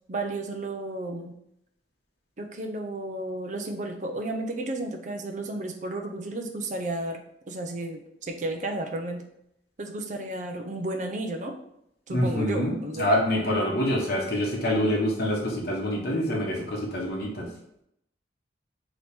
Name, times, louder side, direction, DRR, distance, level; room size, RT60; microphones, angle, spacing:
voice 1, 0.1-1.4 2.4-9.2 9.8-11.5 12.1-13.1, right 2 dB, 45° right, 3 dB, 0.6 m, -33 dB
voice 2, 12.1-17.5, equal, 60° left, -3 dB, 0.9 m, -26 dB
3.4 x 2.9 x 4.2 m, 0.76 s
head